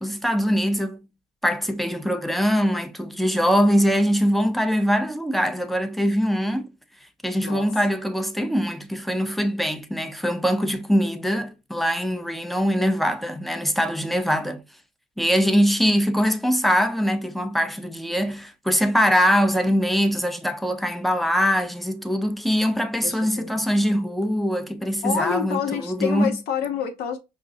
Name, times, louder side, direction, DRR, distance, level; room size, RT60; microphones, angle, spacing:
voice 1, 0.0-1.0 1.4-6.7 7.2-14.6 15.2-26.3, equal, ahead, 0.5 m, -22 dB
voice 2, 23.0-23.7 25.0-27.2, left 7 dB, 70° left, 0.8 m, -28 dB
5.1 x 2.5 x 2.3 m
cardioid pair, 110°, 17 cm